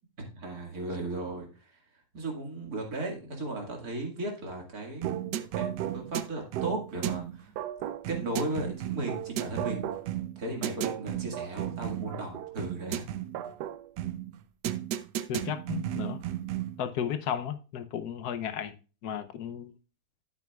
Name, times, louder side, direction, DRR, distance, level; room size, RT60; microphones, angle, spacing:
voice 1, 0.2-1.8 2.1-5.7 5.9-7.5 8.1-9.9 10.4-13.1, right 2 dB, 65° right, 2.5 m, -36 dB
sound 1, 5.0-16.8, right 12 dB, 90° right, 1.2 m, -34 dB
voice 2, 15.3-16.2 16.8-19.7, left 9 dB, 75° left, 1.2 m, -34 dB
11.0 x 8.3 x 2.3 m
omnidirectional pair, 1.7 m